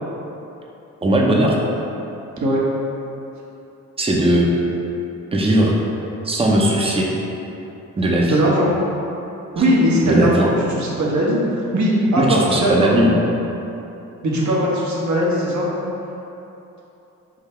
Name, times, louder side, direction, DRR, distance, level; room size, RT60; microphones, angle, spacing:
voice 1, 1.0-1.6 4.0-4.5 5.3-5.8 6.2-7.1 8.0-8.4 10.0-10.5 12.2-13.1, right 1 dB, 15° right, -2 dB, 0.7 m, -18 dB
voice 2, 8.3-8.7 9.5-12.9 14.2-15.7, equal, 55° right, -4 dB, 1.1 m, -19 dB
3.9 x 2.7 x 4.3 m, 3.0 s
supercardioid pair, 60°, 33 cm